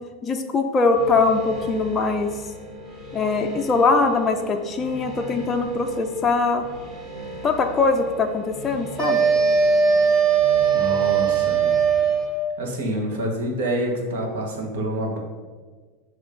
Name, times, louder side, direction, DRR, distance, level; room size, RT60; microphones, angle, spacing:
voice 1, 0.2-2.3 3.1-6.7 7.4-9.2, left 4 dB, 20° left, 2 dB, 0.4 m, -22 dB
sound 1, 0.9-12.2, right 1 dB, 20° right, 1.1 m, -38 dB
sound 2, 9.0-12.5, right 6 dB, 35° right, 1.9 m, -19 dB
voice 2, 10.7-11.8 12.6-15.2, right 1 dB, 85° right, 0 dB, 1.5 m, -27 dB
7.6 x 3.1 x 5.2 m, 1.4 s
supercardioid pair, 155°, 0 cm